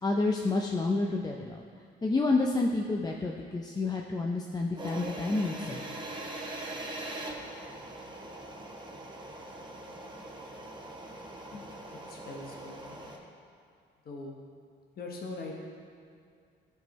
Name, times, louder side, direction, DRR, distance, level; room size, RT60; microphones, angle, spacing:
voice 1, 0.0-1.6 2.0-6.0, left 3 dB, 20° left, 0 dB, 0.5 m, -29 dB
sound 1, 4.8-13.2, right 2 dB, 25° right, 1.0 m, -42 dB
voice 2, 11.9-13.0 14.0-14.4 15.0-15.5, left 3 dB, 50° left, 0 dB, 1.0 m, -42 dB
12.0 x 4.5 x 3.1 m, 2.3 s
cardioid pair, 90°, 20 cm